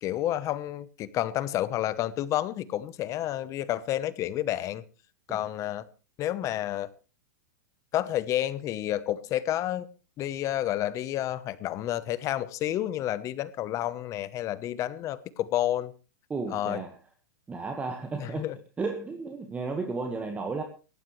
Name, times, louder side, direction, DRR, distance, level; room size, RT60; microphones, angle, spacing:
voice 1, 0.0-4.8 5.3-5.8 6.2-6.9 7.9-9.9 10.2-15.9 16.5-16.8 18.2-18.6, left 13 dB, 30° left, 1.0 m, -30 dB
voice 2, 16.3-17.0 17.5-18.5 18.8-20.6, right 4 dB, 15° right, 1.6 m, -33 dB
19.0 x 15.0 x 3.2 m
supercardioid pair, 140°, 11 cm